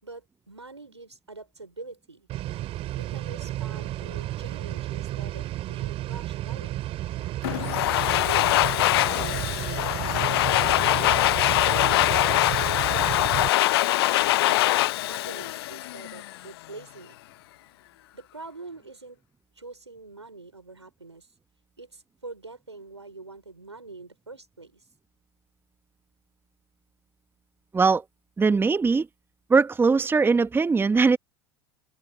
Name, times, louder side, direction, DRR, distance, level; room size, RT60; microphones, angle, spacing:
voice 1, 0.0-2.3 3.0-6.8 8.1-11.0 12.1-13.3 13.7-17.2 18.1-19.2 19.6-21.3 21.8-24.9, right 3 dB, 90° right, 5.2 m, -44 dB
sound 1, 2.3-13.5, right 15 dB, 45° right, 4.3 m, -32 dB
Domestic sounds home sounds, 7.4-16.4, left 17 dB, 65° left, 0.5 m, -23 dB
voice 2, 27.7-28.0 28.4-29.1 29.5-31.2, right 4 dB, 15° right, 1.4 m, -20 dB
open air
figure-of-eight pair, 80°, 14 cm